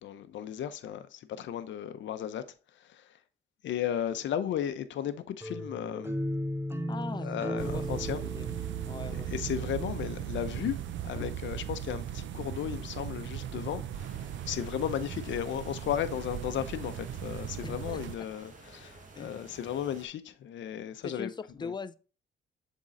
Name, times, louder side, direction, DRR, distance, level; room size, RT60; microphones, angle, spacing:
voice 1, 0.0-2.4 2.7-3.2 3.6-6.2 7.2-8.2 9.1-21.3 21.6-21.7, left 10 dB, 70° left, 0.7 m, -35 dB
sound 1, 5.4-10.3, equal, 10° right, 0.7 m, -36 dB
voice 2, 6.9-7.3 7.6-8.5 8.9-9.3 12.8-12.9 17.6-18.0 19.2-19.4 21.0-21.9, left 5 dB, 20° left, 0.4 m, -41 dB
sound 2, 7.6-18.2, right 11 dB, 70° right, 0.6 m, -38 dB
sound 3, 13.9-20.1, right 3 dB, 40° right, 1.6 m, -52 dB
7.3 x 3.8 x 3.9 m
cardioid pair, 90°, 20 cm